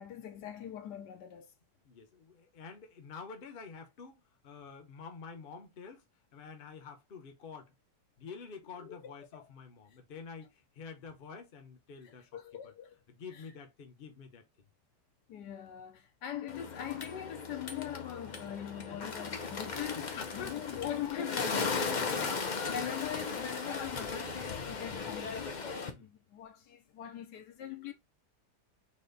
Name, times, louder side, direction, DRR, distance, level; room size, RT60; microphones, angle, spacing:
voice 1, 0.0-1.5 8.8-9.5 12.0-13.0 13.3-13.4 15.3-22.4 22.7-27.9, left 10 dB, 75° left, 1.3 m, -41 dB
voice 2, 1.8-6.0 6.3-7.7 8.2-12.3 12.6-12.7 13.1-14.4 18.9-19.4 19.9-20.8 22.0-22.4 22.8-23.0 25.9-26.1, left 5 dB, 40° left, 0.9 m, -48 dB
Bird, 16.5-25.9, left 4 dB, 55° left, 0.5 m, -37 dB
4.2 x 3.0 x 3.9 m
omnidirectional pair, 1.9 m